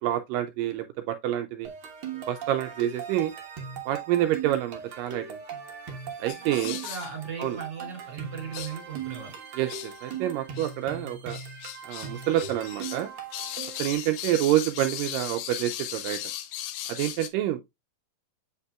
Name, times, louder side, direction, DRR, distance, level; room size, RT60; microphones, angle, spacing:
voice 1, 0.0-1.7 2.3-3.3 3.9-5.4 6.2-6.7 7.4-7.6 9.6-11.4 11.9-13.1 13.8-16.2 17.0-17.6, right 13 dB, 80° right, 2.0 m, -27 dB
sound 1, 1.6-13.9, right 7 dB, 60° right, 1.4 m, -39 dB
sound 2, 6.3-7.1 7.5-7.6 8.5-8.8 9.6-10.2 10.5-10.7 11.3-13.0 13.3-17.3, left 12 dB, 85° left, 2.6 m, -37 dB
voice 2, 6.4-9.4, right 6 dB, 30° right, 2.9 m, -38 dB
8.0 x 5.4 x 2.3 m
omnidirectional pair, 4.3 m